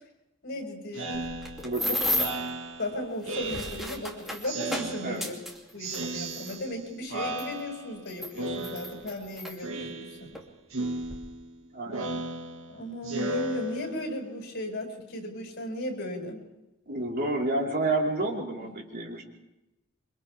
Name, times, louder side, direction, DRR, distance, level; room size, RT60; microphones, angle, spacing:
voice 1, 0.4-1.3 1.8-1.9 2.8-5.4 5.7-10.3 12.7-16.4, left 1 dB, 55° left, 1 dB, 6.4 m, -36 dB
Speech synthesizer, 0.9-4.1 4.4-5.5 5.8-6.8 7.1-8.0 8.4-9.3 9.6-10.4 10.7-14.2, right 1 dB, 85° right, 2.2 m, -35 dB
sound 1, 1.1-2.5 3.2-6.6 7.4-7.5 8.1-9.6 10.3-10.5 10.8-11.2, left 1 dB, ahead, 3.1 m, -33 dB
voice 2, 11.7-12.1 16.9-19.2, right 2 dB, 50° right, -2 dB, 4.5 m, -29 dB
28.5 x 25.0 x 3.6 m, 0.94 s
head